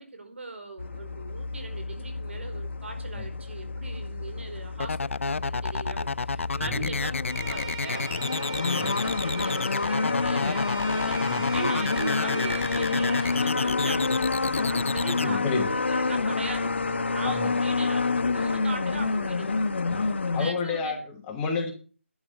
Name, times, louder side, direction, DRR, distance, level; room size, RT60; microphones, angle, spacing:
voice 1, 0.0-19.5 20.4-21.0, right 2 dB, 65° right, 7 dB, 4.5 m, -39 dB
sound 1, 0.8-20.5, left 4 dB, 60° left, 1.1 m, -28 dB
sound 2, 4.8-15.3, left 4 dB, 75° left, 0.5 m, -30 dB
voice 2, 6.6-6.9 8.7-8.9 11.3-11.5 15.1-15.7 17.2-17.5 19.9-21.7, left 4 dB, 10° left, 3 dB, 1.2 m, -31 dB
Bowed string instrument, 7.2-13.5, right 5 dB, 25° right, 4.4 m, -40 dB
12.0 x 9.0 x 6.5 m, 0.38 s
figure-of-eight pair, 165°, 7 cm